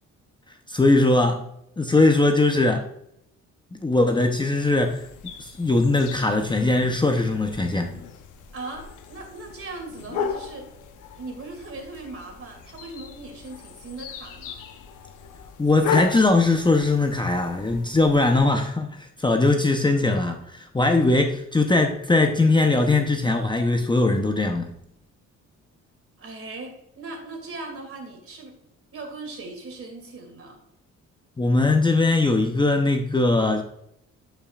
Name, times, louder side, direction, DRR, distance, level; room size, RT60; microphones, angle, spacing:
voice 1, 0.7-1.5 1.8-2.9 3.7-5.1 5.4-7.9 15.6-24.7 31.4-33.6, left 2 dB, 15° left, 4 dB, 0.7 m, -20 dB
sound 1, 4.6-18.4, left 6 dB, 90° left, 0.9 m, -36 dB
voice 2, 8.5-10.7 11.2-14.6 26.2-28.6 28.9-30.6, right 3 dB, 45° right, 3 dB, 2.5 m, -38 dB
11.0 x 5.7 x 2.4 m, 0.75 s
cardioid pair, 90°, 30 cm